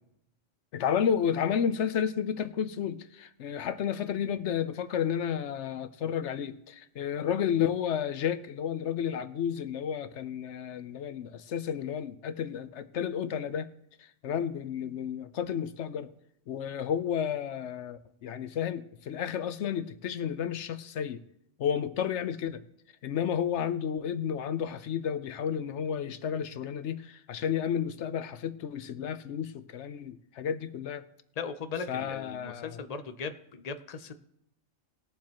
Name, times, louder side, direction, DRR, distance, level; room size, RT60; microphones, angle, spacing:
voice 1, 0.7-13.7 14.2-16.1 16.5-21.2 21.6-22.6 23.0-31.0 31.9-32.8, left 8 dB, 70° left, 0.9 m, -32 dB
voice 2, 31.4-34.1, left 5 dB, 40° left, 0.7 m, -38 dB
20.0 x 7.4 x 3.0 m
omnidirectional pair, 1.3 m